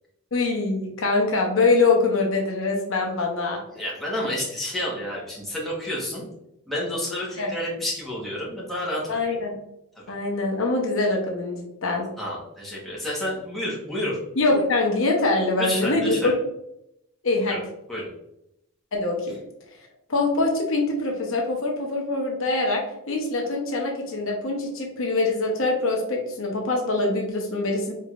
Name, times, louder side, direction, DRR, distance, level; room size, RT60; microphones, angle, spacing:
voice 1, 0.3-3.6 7.4-7.5 9.1-9.5 10.1-12.1 14.4-16.3 17.2-17.6 18.9-19.4 20.1-27.9, left 3 dB, 65° left, 0 dB, 0.9 m, -24 dB
voice 2, 3.7-6.2 6.7-9.4 9.9-10.2 12.2-14.2 15.6-16.3 17.5-17.6 17.9-18.1, left 1 dB, ahead, -6 dB, 1.3 m, -30 dB
4.5 x 3.7 x 2.5 m, 0.81 s
head